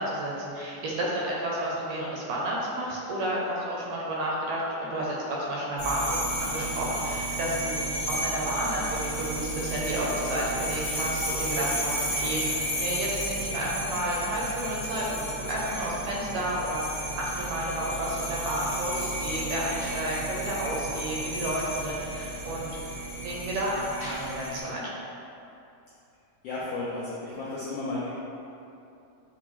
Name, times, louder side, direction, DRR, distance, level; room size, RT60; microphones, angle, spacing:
voice 1, 0.0-7.7 8.1-22.9 23.2-24.8, right 1 dB, 75° right, -4 dB, 1.7 m, -31 dB
sound 1, 5.8-24.6, right 1 dB, 30° left, 0.6 m, -33 dB
voice 2, 26.4-28.1, left 2 dB, 90° left, -7 dB, 1.3 m, -33 dB
5.9 x 2.2 x 3.0 m, 2.7 s
omnidirectional pair, 3.3 m